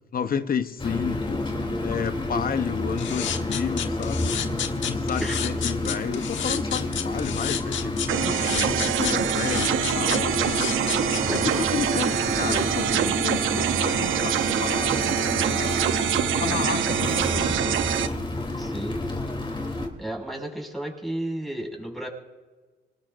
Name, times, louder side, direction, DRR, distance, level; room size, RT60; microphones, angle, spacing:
voice 1, 0.1-1.4 1.8-4.3 4.8-15.2 15.6-16.1 16.4-17.8, left 7 dB, 45° left, 0.9 m, -31 dB
sound 1, 0.8-19.9, left 2 dB, 25° left, 3.2 m, -30 dB
sound 2, 3.0-11.4, left 9 dB, 70° left, 1.3 m, -31 dB
sound 3, 8.1-18.1, right 10 dB, 80° right, 0.9 m, -25 dB
voice 2, 11.3-11.7 18.6-19.0 20.0-22.1, right 1 dB, ahead, 6.1 m, -33 dB
26.5 x 20.0 x 2.6 m
cardioid pair, 90°, 20 cm